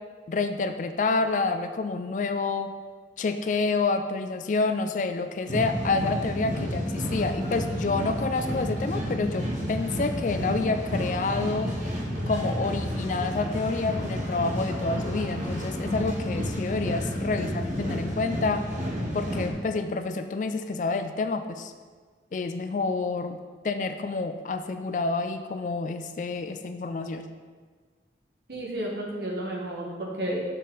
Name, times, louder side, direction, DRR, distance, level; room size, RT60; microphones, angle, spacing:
voice 1, 0.3-2.7 3.2-11.7 12.3-18.6 19.1-21.7 22.3-27.3, left 3 dB, 45° left, 8 dB, 0.3 m, -28 dB
sound 1, 5.5-19.5, equal, 45° right, 1.4 m, -31 dB
voice 2, 17.3-17.8 28.5-30.4, right 1 dB, 65° right, -2 dB, 1.4 m, -32 dB
7.1 x 4.2 x 3.9 m, 1.5 s
head